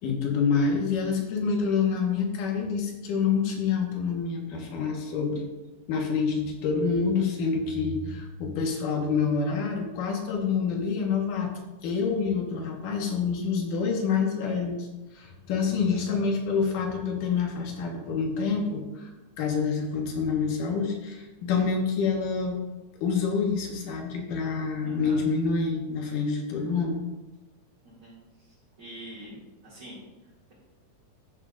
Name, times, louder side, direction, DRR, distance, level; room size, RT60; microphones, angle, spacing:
voice 1, 0.0-5.5 5.9-11.5 11.8-14.9 15.1-19.1 19.4-22.6 23.0-27.0, left 5 dB, 80° left, 1 dB, 2.8 m, -27 dB
voice 2, 24.8-25.2 27.8-28.1 28.8-30.0, right 1 dB, 40° right, -8 dB, 2.9 m, -44 dB
14.5 x 7.1 x 2.5 m, 1.1 s
omnidirectional pair, 3.7 m